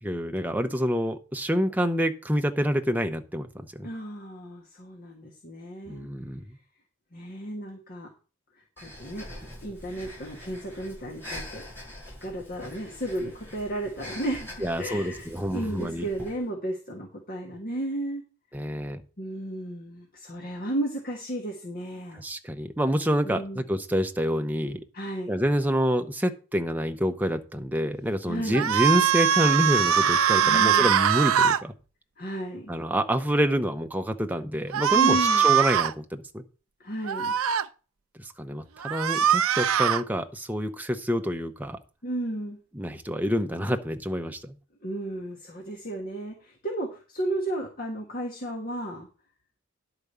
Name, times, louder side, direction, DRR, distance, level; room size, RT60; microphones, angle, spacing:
voice 1, 0.0-3.9 5.9-6.4 14.6-16.1 18.5-19.0 22.1-24.8 25.3-31.7 32.7-35.2 35.4-36.4 38.2-41.8 42.7-44.6, equal, 10° right, 6 dB, 0.8 m, -27 dB
voice 2, 3.8-6.1 7.1-8.1 8.8-9.3 9.6-11.6 12.2-18.2 19.2-22.2 23.3-23.6 24.9-25.3 28.3-28.6 30.4-31.0 32.2-32.7 34.9-35.5 36.8-37.3 42.0-42.6 44.8-49.1, right 1 dB, 45° left, 1 dB, 1.6 m, -33 dB
Breathing, 8.8-16.4, left 1 dB, 10° left, 6.6 m, -44 dB
sound 1, 28.5-31.6 34.7-35.9 37.1-37.6 38.8-40.0, right 8 dB, 75° right, 0.5 m, -22 dB
10.5 x 4.9 x 6.7 m, 0.35 s
head